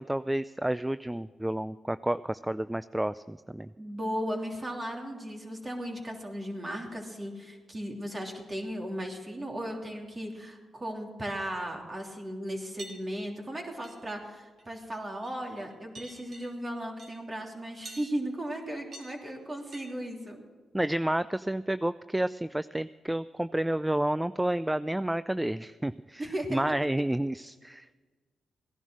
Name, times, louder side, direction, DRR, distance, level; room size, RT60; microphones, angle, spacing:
voice 1, 0.0-3.7 20.7-28.0, right 1 dB, 10° right, 15 dB, 0.3 m, -30 dB
voice 2, 3.8-20.4 26.2-26.6, equal, 30° right, 1 dB, 3.1 m, -36 dB
sound 1, 12.8-12.9 13.8-14.2 14.6-14.9 15.2-15.7 15.9-16.5 17.0-17.1 17.8-18.0 18.9-19.1 19.7-19.9, right 2 dB, 60° right, 2.7 m, -46 dB
16.5 x 11.0 x 6.2 m, 1.4 s
supercardioid pair, 50°, 0 cm